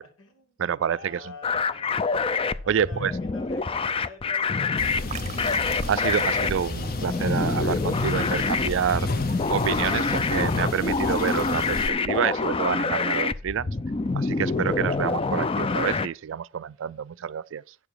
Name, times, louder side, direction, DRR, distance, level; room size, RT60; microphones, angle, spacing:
voice 1, 0.0-2.2 2.5-5.1, left 1 dB, 90° left, 2.7 m, -47 dB
voice 2, 0.6-1.3 2.7-3.1 5.9-9.1 9.5-13.8 14.1-17.7, right 8 dB, 65° right, 0.4 m, -28 dB
sound 1, 1.4-16.1, left 4 dB, 25° left, 0.4 m, -26 dB
sound 2, 4.8-11.9, left 3 dB, 45° left, 0.8 m, -34 dB
sound 3, 5.1-11.8, right 3 dB, 35° right, 0.7 m, -41 dB
9.7 x 7.0 x 4.6 m
head